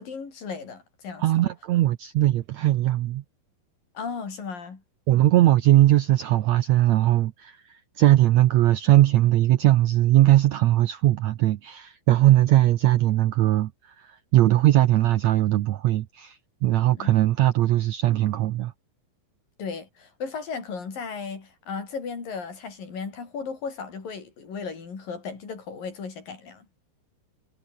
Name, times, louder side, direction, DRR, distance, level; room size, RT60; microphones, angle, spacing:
voice 1, 0.0-1.3 3.9-4.8 17.0-17.2 19.6-26.7, left 5 dB, 70° left, 6.7 m, -35 dB
voice 2, 1.2-3.2 5.1-18.7, right 14 dB, 75° right, 1.7 m, -20 dB
omnidirectional pair, 4.1 m